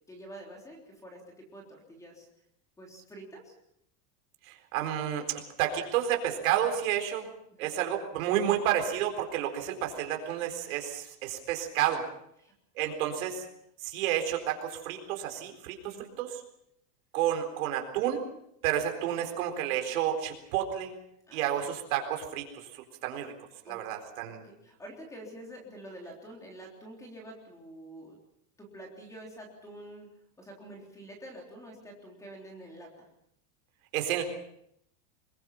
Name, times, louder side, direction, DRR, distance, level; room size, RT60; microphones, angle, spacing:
voice 1, 0.1-2.3 2.8-3.5 7.5-7.7 12.4-12.5 15.8-16.1 21.3-21.7 23.7-23.8 24.3-28.2 28.6-30.1 30.4-33.1, right 1 dB, 5° left, 0 dB, 3.5 m, -47 dB
voice 2, 4.4-7.3 7.6-12.0 12.8-13.5 13.8-16.4 17.1-18.2 18.6-20.9 21.3-23.3 23.7-24.4 33.9-34.2, right 10 dB, 60° right, 5 dB, 4.2 m, -30 dB
25.0 x 22.0 x 5.8 m, 0.76 s
supercardioid pair, 175°, 46 cm